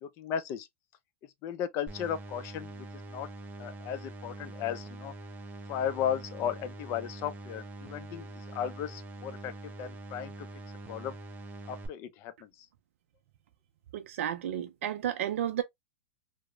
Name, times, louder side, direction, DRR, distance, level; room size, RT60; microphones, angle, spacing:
voice 1, 0.0-0.7 1.4-2.7 3.1-3.3 3.6-5.1 5.7-8.3 8.5-9.5 9.8-10.3 10.9-11.1 11.7-12.3, left 9 dB, 40° left, 0.4 m, -35 dB
sound 1, 1.9-11.9, right 2 dB, 20° right, 0.5 m, -44 dB
voice 2, 13.9-15.6, right 10 dB, 75° right, 0.3 m, -32 dB
2.9 x 2.0 x 2.3 m
hypercardioid pair, 125°, 7 cm